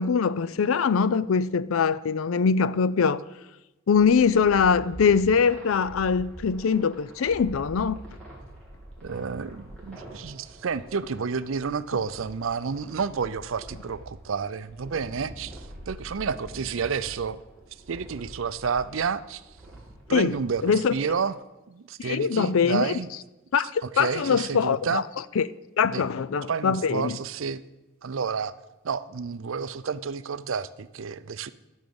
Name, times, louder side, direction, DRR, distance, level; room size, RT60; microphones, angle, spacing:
voice 1, 0.0-3.2 3.9-8.0 20.1-20.3 20.6-20.9 22.0-22.9 23.5-25.0 25.4-25.5 25.8-27.2, left 6 dB, 80° left, 0.4 m, -22 dB
sound 1, 3.9-21.0, right 1 dB, 5° left, 2.7 m, -45 dB
voice 2, 9.0-17.4 17.9-19.4 20.1-21.4 21.7-23.1 23.8-25.0 25.9-26.0 26.5-27.6 28.0-28.5 28.8-31.5, right 5 dB, 75° right, 0.5 m, -30 dB
14.0 x 6.4 x 7.0 m
head